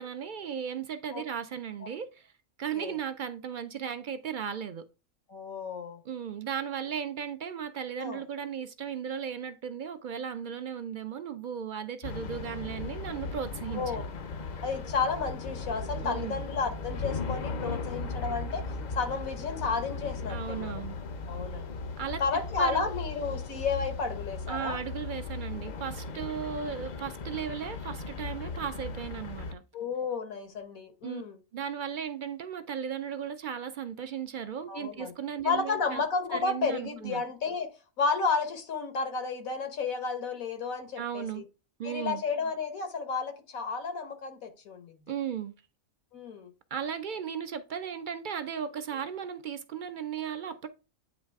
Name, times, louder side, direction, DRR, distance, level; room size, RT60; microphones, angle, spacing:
voice 1, 0.0-2.3 2.6-4.9 6.0-14.0 16.0-16.4 20.3-21.0 22.0-22.2 22.6-22.9 24.5-29.6 31.0-31.2 31.5-36.0 36.3-37.2 41.0-41.4 41.8-42.2 45.1-45.5 46.7-50.7, right 8 dB, 65° right, 0.4 m, -36 dB
voice 2, 5.3-6.0 8.0-8.2 13.7-14.0 14.6-18.6 18.9-20.8 21.3-21.8 22.2-24.8 29.7-31.4 34.7-35.1 35.4-37.7 38.0-41.4 41.8-45.0 46.1-46.5, left 4 dB, 90° left, 1.6 m, -32 dB
sound 1, 12.0-29.5, left 3 dB, 55° left, 0.5 m, -37 dB
8.9 x 3.2 x 3.4 m
omnidirectional pair, 1.4 m